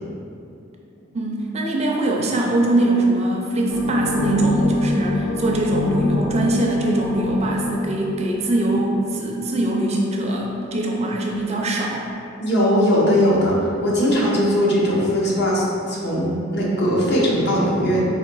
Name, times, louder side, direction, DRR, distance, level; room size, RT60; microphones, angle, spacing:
voice 1, 1.1-12.1, right 1 dB, 30° right, -1 dB, 0.4 m, -22 dB
sound 1, 3.7-9.1, left 2 dB, 90° left, 0.5 m, -25 dB
voice 2, 12.4-18.1, equal, 55° left, -4 dB, 0.9 m, -19 dB
3.9 x 2.9 x 4.5 m, 2.6 s
head